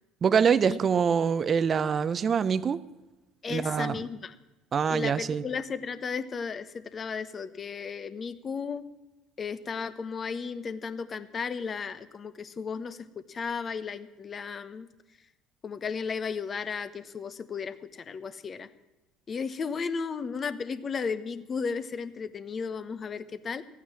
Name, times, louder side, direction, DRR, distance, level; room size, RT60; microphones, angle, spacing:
voice 1, 0.2-2.8 3.5-4.0 4.7-5.4, right 6 dB, 40° right, 16 dB, 0.6 m, -25 dB
voice 2, 3.4-4.3 4.9-8.8 9.4-14.9 15.6-18.7 19.3-23.6, left 5 dB, 35° left, 13 dB, 1.0 m, -34 dB
14.5 x 9.3 x 7.4 m, 1.1 s
hypercardioid pair, 65°, 0 cm